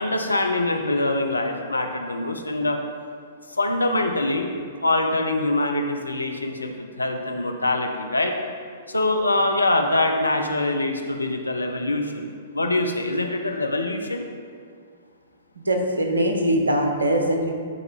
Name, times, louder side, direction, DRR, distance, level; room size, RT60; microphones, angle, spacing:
voice 1, 0.0-2.8 3.5-4.5 4.8-8.4 8.9-12.3 12.5-14.2, left 2 dB, 85° left, 4 dB, 0.7 m, -24 dB
voice 2, 15.7-17.5, right 1 dB, 80° right, 3 dB, 0.9 m, -21 dB
10.0 x 3.9 x 3.6 m, 2.1 s
figure-of-eight pair, 110°, 0 cm